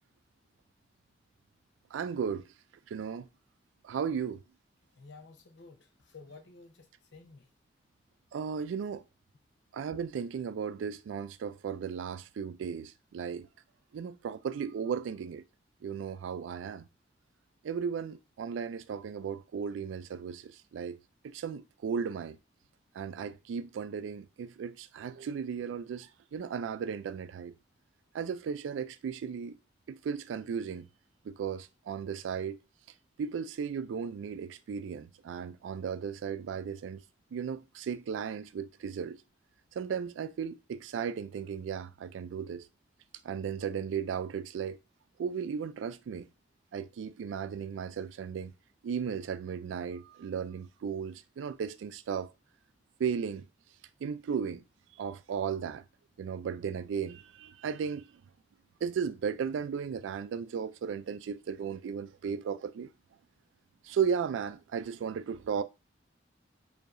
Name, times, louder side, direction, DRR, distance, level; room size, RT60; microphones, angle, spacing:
voice 1, 1.9-2.4 2.9-3.3 3.8-4.4 8.3-9.0 9.7-13.5 13.9-15.4 15.8-16.9 17.6-21.0 21.2-22.4 22.9-27.5 28.1-29.6 29.9-30.9 31.3-32.6 33.2-37.0 37.3-39.2 39.8-42.7 43.2-44.8 45.2-46.3 46.7-48.5 48.8-52.3 53.0-53.5 54.0-54.6 55.0-55.8 56.2-58.1 58.8-62.9 63.8-65.6, right 7 dB, 90° right, 0.3 m, -35 dB
voice 2, 4.9-7.5, left 3 dB, 75° left, 0.7 m, -53 dB
4.7 x 2.8 x 2.5 m
head